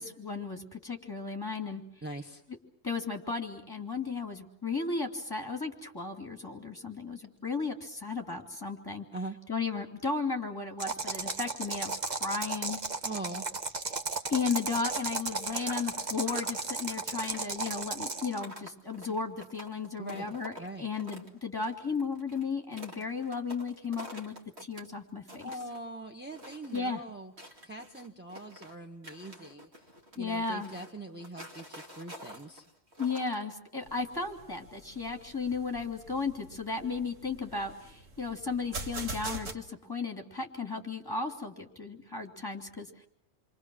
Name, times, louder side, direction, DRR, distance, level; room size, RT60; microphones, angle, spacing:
voice 1, 0.0-1.8 2.8-9.0 9.5-12.8 14.3-20.5 20.8-24.3 24.6-25.5 26.7-27.0 30.2-30.7 33.0-43.1, left 4 dB, 15° left, 3 dB, 2.8 m, -35 dB
voice 2, 2.0-2.4 9.1-9.4 13.0-13.4 20.0-20.9 25.4-29.9 30.1-32.6, right 2 dB, 10° right, 2 dB, 1.5 m, -42 dB
sound 1, 10.8-18.4, right 3 dB, 35° right, 1.3 m, -35 dB
sound 2, 15.5-21.3 21.6-24.9 25.2-25.8 26.3-26.9 27.4-28.7 29.0-33.4, equal, 55° right, 2.6 m, -48 dB
sound 3, 33.8-39.5, right 2 dB, 90° right, 2.0 m, -43 dB
29.0 x 23.5 x 6.2 m, 0.67 s
omnidirectional pair, 1.3 m